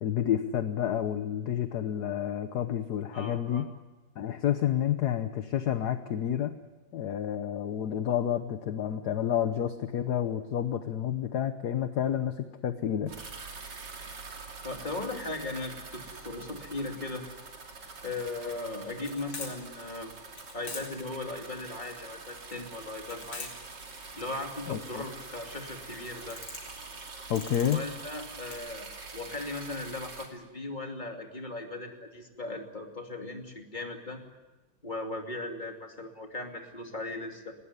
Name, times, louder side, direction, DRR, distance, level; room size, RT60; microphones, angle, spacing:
voice 1, 0.0-3.7 4.2-6.6 6.9-13.1 24.7-24.8 27.3-27.8, left 10 dB, 60° left, 9 dB, 1.4 m, -29 dB
voice 2, 3.1-3.6 14.6-17.2 18.0-20.1 20.5-23.5 24.1-26.4 27.7-34.2 34.8-37.5, left 2 dB, 20° left, 3 dB, 2.7 m, -38 dB
sound 1, 13.1-30.3, right 4 dB, 60° right, 3.4 m, -45 dB
sound 2, 17.6-28.6, left 3 dB, 75° left, 4.9 m, -45 dB
19.5 x 18.5 x 9.7 m, 1.1 s
omnidirectional pair, 2.2 m